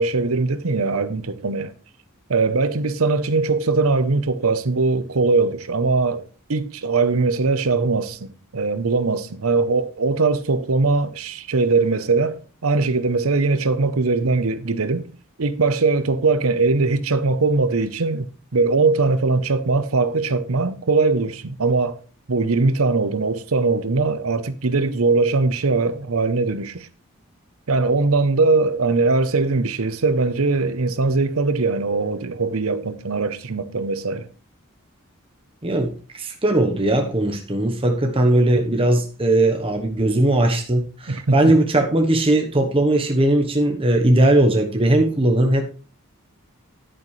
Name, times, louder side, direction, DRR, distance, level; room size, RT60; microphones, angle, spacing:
voice 1, 0.0-1.7 2.3-15.1 15.4-22.0 22.3-26.9 27.7-34.3 41.1-41.5, right 3 dB, 85° right, 0.8 m, -21 dB
voice 2, 35.6-45.6, right 1 dB, 25° right, 1.0 m, -19 dB
10.0 x 9.3 x 3.2 m
head